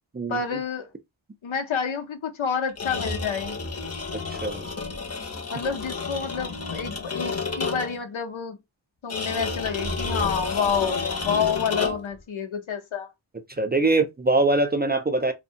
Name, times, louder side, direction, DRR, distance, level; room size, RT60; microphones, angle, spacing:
voice 1, 0.3-0.9 1.4-3.6 5.5-8.6 9.0-13.1, left 6 dB, 85° left, 0.7 m, -29 dB
sound 1, 2.7-8.1 9.1-12.2, left 4 dB, 35° left, 0.6 m, -30 dB
voice 2, 4.3-4.7 13.6-15.3, right 2 dB, 25° right, 0.3 m, -22 dB
2.6 x 2.1 x 2.6 m
wide cardioid pair, 45°, 46 cm